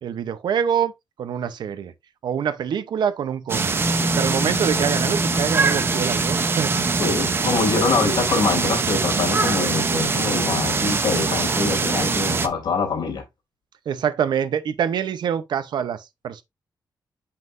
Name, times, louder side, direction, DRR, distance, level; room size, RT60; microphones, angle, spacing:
voice 1, 0.0-0.9 1.2-1.9 2.2-3.7 4.2-6.8 13.9-16.4, right 8 dB, 80° right, 0.8 m, -25 dB
sound 1, 3.5-12.5, right 4 dB, 30° right, 0.7 m, -23 dB
Bass guitar, 3.8-10.1, left 1 dB, 5° left, 0.5 m, -31 dB
voice 2, 7.0-13.2, left 4 dB, 70° left, 3.0 m, -24 dB
7.6 x 5.8 x 2.6 m
wide cardioid pair, 165°, 8 cm